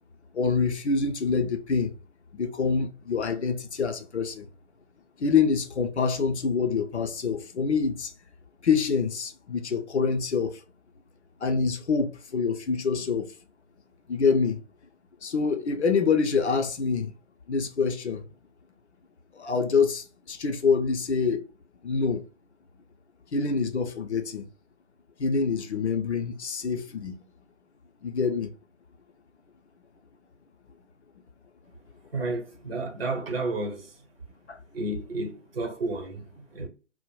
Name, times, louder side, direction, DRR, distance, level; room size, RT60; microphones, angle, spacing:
voice 1, 0.3-1.9 2.3-4.5 5.2-8.1 8.6-10.6 11.4-13.3 14.1-14.6 15.2-17.1 17.5-18.2 19.3-21.4 21.8-22.2 23.3-24.5 25.2-27.2 28.0-28.5 34.5-34.6, left 5 dB, 65° left, 0.6 m, -26 dB
voice 2, 32.1-33.9 34.7-36.7, right 2 dB, 55° right, 0.8 m, -31 dB
2.3 x 2.0 x 3.0 m
figure-of-eight pair, 145°, 36 cm